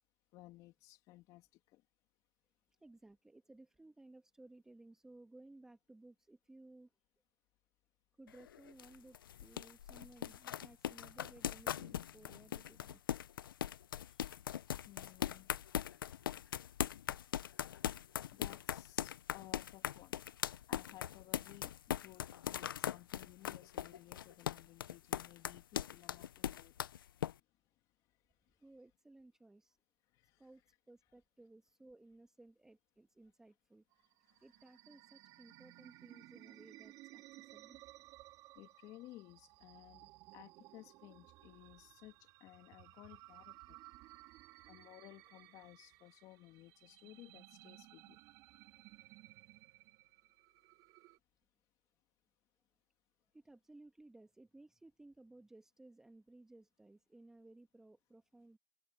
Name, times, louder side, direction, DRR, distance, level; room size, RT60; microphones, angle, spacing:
voice 1, 0.3-1.8 14.9-15.5 18.3-20.2 20.7-26.7 30.1-30.4 38.5-43.8 44.7-48.2, left 17 dB, 30° left, 3.0 m, -58 dB
voice 2, 2.8-6.9 8.2-13.0 14.1-14.3 28.6-29.8 30.4-30.6 30.9-33.8 34.4-37.8 53.3-58.6, right 2 dB, 5° right, 1.9 m, -59 dB
sound 1, 8.3-27.3, left 10 dB, 70° left, 0.9 m, -40 dB
sound 2, 33.9-51.2, right 19 dB, 30° right, 2.4 m, -59 dB
hypercardioid pair, 140°, 12 cm